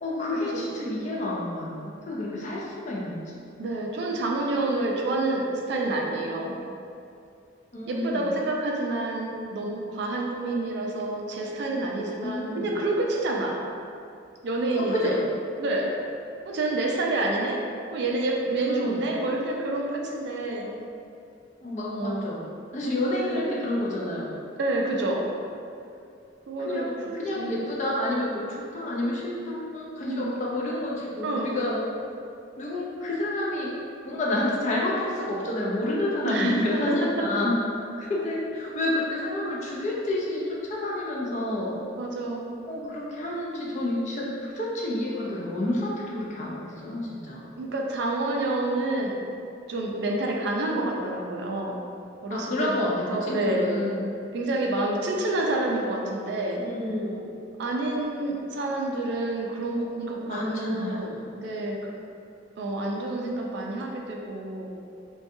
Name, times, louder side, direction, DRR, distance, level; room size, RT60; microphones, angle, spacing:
voice 1, 0.0-3.4 7.7-8.2 12.2-12.7 14.8-15.2 18.6-19.0 21.6-22.4 22.7-24.4 26.6-31.8 32.6-33.7 34.0-37.6 38.0-41.8 42.7-47.5 52.3-54.0 56.6-57.3 60.3-61.0, left 1 dB, 40° left, -4 dB, 0.4 m, -29 dB
voice 2, 3.6-6.6 7.9-13.6 14.4-15.2 15.6-16.0 16.4-17.6 17.9-20.7 21.9-22.2 23.0-23.5 24.6-25.3 26.5-27.8 30.1-30.3 31.2-31.5 36.2-36.5 36.9-37.0 42.0-42.5 47.5-49.2 49.7-51.8 52.2-52.8 53.1-53.7 54.3-56.6 57.6-62.0 62.6-64.7, right 2 dB, 60° right, 0 dB, 0.3 m, -28 dB
2.5 x 2.2 x 2.6 m, 2.5 s
head